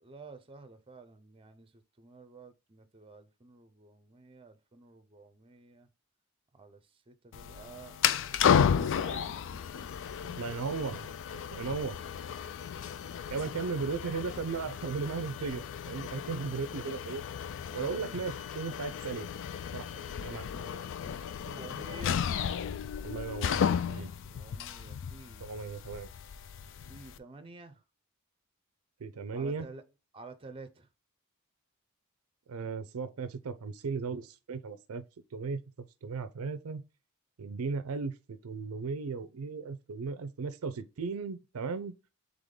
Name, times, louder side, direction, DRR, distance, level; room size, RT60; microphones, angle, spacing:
voice 1, 0.0-5.9 6.5-8.0 8.3-9.3 17.8-18.3 20.2-22.2 24.2-25.5 26.7-27.8 29.3-29.8 30.1-30.9, right 3 dB, 25° right, 0.6 m, -50 dB
sound 1, 7.3-27.2, left 8 dB, 60° left, 0.3 m, -33 dB
voice 2, 10.2-11.1 11.5-12.0 13.3-17.2 17.7-19.3 19.7-19.8 20.2-20.5 23.0-23.6 23.9-24.1 25.4-26.1 29.0-29.7 32.5-35.0 35.3-35.6 36.0-36.8 37.4-41.9, right 4 dB, 70° right, 0.5 m, -36 dB
3.6 x 3.5 x 3.8 m
head